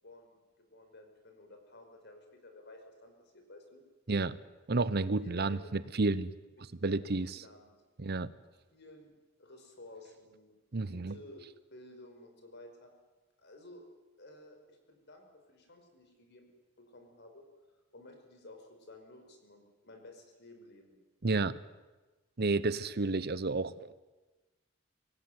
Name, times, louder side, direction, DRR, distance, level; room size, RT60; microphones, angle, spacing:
voice 1, 0.0-3.8 5.2-5.8 6.6-7.9 8.7-9.1 9.4-12.9 13.4-13.8 14.2-16.5 16.8-17.5 17.9-21.0, left 1 dB, 55° left, 5 dB, 5.1 m, -54 dB
voice 2, 4.7-6.3 6.8-7.3 8.0-8.3 10.7-11.1 21.2-21.6 22.4-24.0, right 3 dB, 50° right, 16 dB, 0.9 m, -31 dB
25.0 x 17.5 x 9.7 m, 1.2 s
head